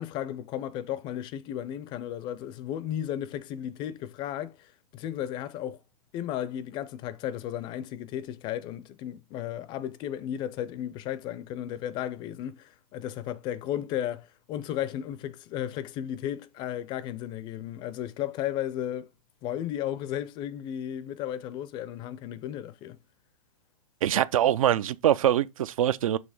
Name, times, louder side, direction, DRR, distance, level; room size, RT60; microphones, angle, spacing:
voice 1, 0.0-5.8 6.1-19.1 19.4-23.0, left 11 dB, 25° left, 0.4 m, -34 dB
voice 2, 24.0-26.2, right 11 dB, 70° right, 0.5 m, -23 dB
6.5 x 3.1 x 4.9 m
hypercardioid pair, 140°, 18 cm